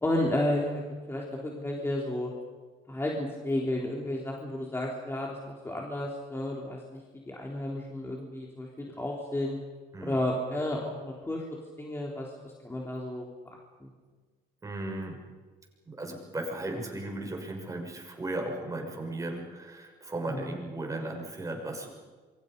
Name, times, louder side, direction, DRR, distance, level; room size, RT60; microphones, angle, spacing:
voice 1, 0.0-0.8 1.1-2.3 2.9-8.7 8.9-9.6 10.0-11.5 11.8-13.3 13.8-13.9 20.3-20.6, left 1 dB, 15° left, -2 dB, 3.6 m, -32 dB
voice 2, 14.6-15.2 15.9-21.9, right 2 dB, 20° right, 1 dB, 6.4 m, -36 dB
28.0 x 23.5 x 5.4 m, 1.4 s
cardioid pair, 110°, 17 cm